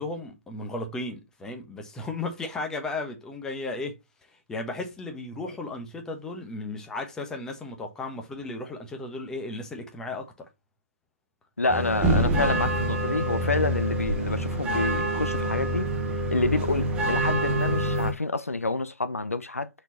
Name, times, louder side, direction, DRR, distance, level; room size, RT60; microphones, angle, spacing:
voice 1, 0.0-4.0 4.5-10.5, left 2 dB, 10° left, 1.1 m, -35 dB
voice 2, 11.6-15.9 16.3-19.7, left 3 dB, 85° left, 0.6 m, -28 dB
sound 1, 11.7-18.1, right 1 dB, 15° right, 1.3 m, -26 dB
5.9 x 4.3 x 4.1 m
figure-of-eight pair, 135°, 8 cm